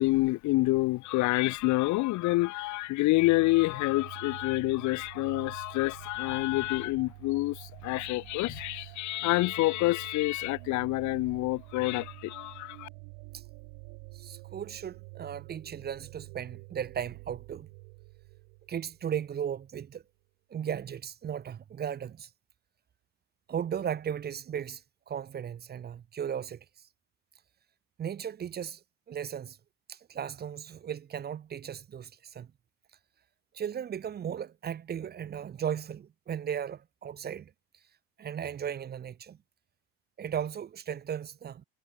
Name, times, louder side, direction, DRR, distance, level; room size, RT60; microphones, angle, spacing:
voice 1, 0.0-12.9, left 20 dB, 65° left, 2.2 m, -27 dB
sound 1, 3.1-19.5, right 34 dB, 85° right, 3.5 m, -48 dB
voice 2, 14.1-17.7 18.7-20.0 20.5-22.3 23.5-26.6 28.0-28.8 29.1-29.6 29.9-32.5 33.5-37.5 38.2-39.4 40.2-41.6, right 8 dB, 30° right, 1.2 m, -36 dB
supercardioid pair, 120°, 32 cm